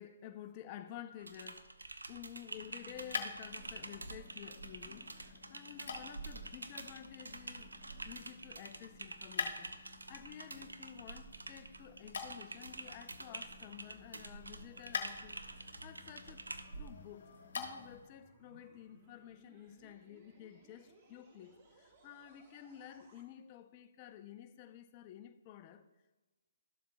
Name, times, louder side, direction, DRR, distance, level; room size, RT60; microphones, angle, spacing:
voice 1, 0.0-1.7 2.1-7.8 8.0-16.4 16.8-25.9, left 10 dB, 30° left, 0.7 m, -52 dB
Typing, 1.2-16.9, right 3 dB, 90° right, 0.7 m, -48 dB
sound 1, 2.4-18.1, left 5 dB, 60° left, 1.3 m, -47 dB
sound 2, 13.6-23.2, right 1 dB, 35° right, 1.7 m, -63 dB
13.0 x 7.3 x 2.3 m
figure-of-eight pair, 140°, 0 cm